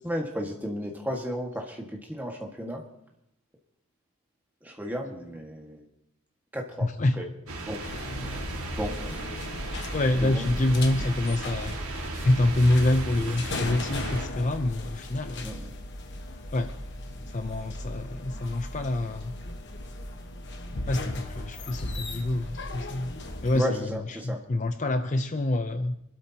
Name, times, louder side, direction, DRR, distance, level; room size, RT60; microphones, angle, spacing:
voice 1, 0.0-2.8 4.6-5.9 6.5-6.9 7.2-7.3 7.6-7.8 8.2-9.2 10.2-10.5 15.4-15.7 23.5-24.4, equal, 10° right, 0 dB, 1.7 m, -34 dB
voice 2, 6.8-7.2 9.9-11.8 12.2-15.7 16.5-16.7 17.3-19.3 20.9-23.1 23.4-26.0, left 1 dB, 35° left, 8 dB, 0.6 m, -26 dB
sound 1, 7.5-14.3, right 2 dB, 80° right, 2.1 m, -36 dB
sound 2, 7.8-23.6, left 1 dB, 55° left, 1.3 m, -37 dB
27.5 x 12.5 x 2.9 m, 0.81 s
head